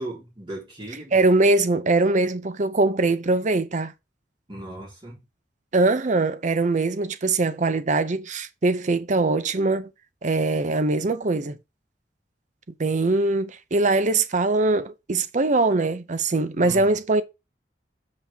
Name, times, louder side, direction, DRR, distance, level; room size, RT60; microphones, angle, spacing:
voice 1, 0.0-1.2 4.5-5.2 16.6-16.9, right 1 dB, 30° right, 3.7 m, -37 dB
voice 2, 1.1-3.9 5.7-9.9 10.2-11.6 12.8-17.2, right 3 dB, 45° right, 0.6 m, -22 dB
7.4 x 5.9 x 3.5 m
head